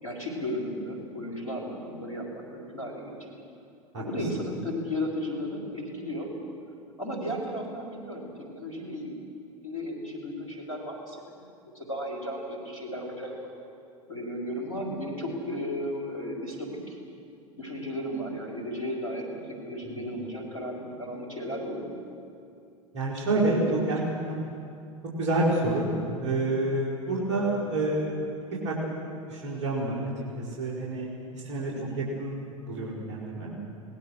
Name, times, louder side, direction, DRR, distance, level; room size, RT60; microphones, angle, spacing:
voice 1, 0.0-3.3 4.0-6.3 7.0-9.2 9.6-11.2 11.7-13.4 14.1-17.0 17.6-22.0 23.3-23.9 31.7-32.0, equal, 85° left, -1 dB, 4.8 m, -34 dB
voice 2, 22.9-24.0 24.3-24.5 25.2-28.2 28.6-28.7 29.3-30.1 30.4-31.1 31.3-31.7 32.0-33.5, right 2 dB, 50° right, -6 dB, 5.0 m, -28 dB
25.5 x 20.0 x 6.6 m, 2.5 s
figure-of-eight pair, 80°, 17 cm